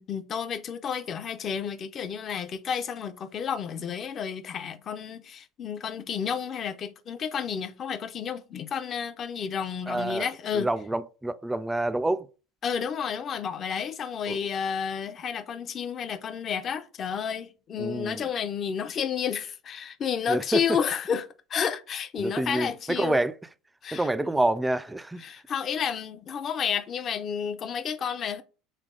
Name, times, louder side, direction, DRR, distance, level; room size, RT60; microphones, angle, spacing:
voice 1, 0.0-10.7 12.6-23.2 23.8-24.1 25.2-28.4, left 7 dB, 40° left, 0.5 m, -31 dB
voice 2, 9.9-10.3 10.5-12.3 14.3-14.4 17.8-18.2 20.3-20.6 22.2-23.3 23.9-25.2, right 2 dB, 10° right, 0.3 m, -27 dB
3.5 x 3.3 x 3.8 m
supercardioid pair, 100°, 0 cm